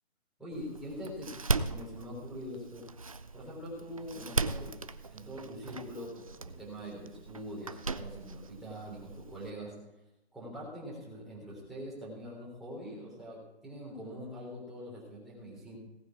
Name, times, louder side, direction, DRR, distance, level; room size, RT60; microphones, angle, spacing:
voice 1, 0.4-2.8 3.3-4.8 5.1-9.8 10.3-15.8, equal, ahead, -7 dB, 3.5 m, -43 dB
Door, 0.5-9.5, right 3 dB, 35° right, 0.4 m, -38 dB
18.0 x 9.6 x 4.8 m, 0.90 s
hypercardioid pair, 170°, 32 cm